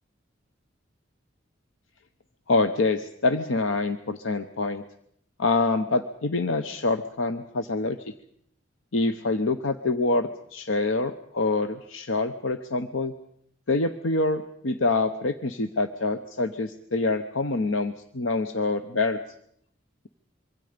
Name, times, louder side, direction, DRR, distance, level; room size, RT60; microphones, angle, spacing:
voice 1, 2.5-4.8 5.4-8.0 8.9-13.1 13.7-19.2, left 3 dB, 80° left, 8 dB, 0.9 m, -26 dB
25.5 x 23.5 x 5.2 m, 0.70 s
head